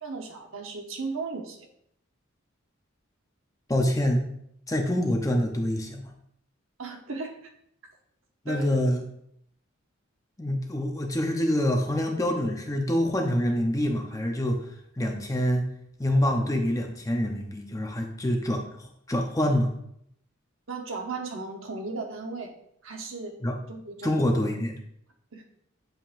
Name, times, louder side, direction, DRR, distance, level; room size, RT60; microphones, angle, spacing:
voice 1, 0.0-1.6 4.9-5.0 6.8-7.5 8.5-8.7 16.4-16.5 20.7-22.5 22.8-23.3 23.7-24.2 25.3-25.4, right 3 dB, 75° right, 3 dB, 1.0 m, -36 dB
voice 2, 3.7-4.3 4.7-6.0 8.4-9.1 10.4-14.6 15.0-15.7 16.0-19.7 23.4-23.6 24.0-24.7, left 1 dB, 15° left, 2 dB, 0.8 m, -26 dB
7.5 x 5.1 x 2.6 m, 0.71 s
head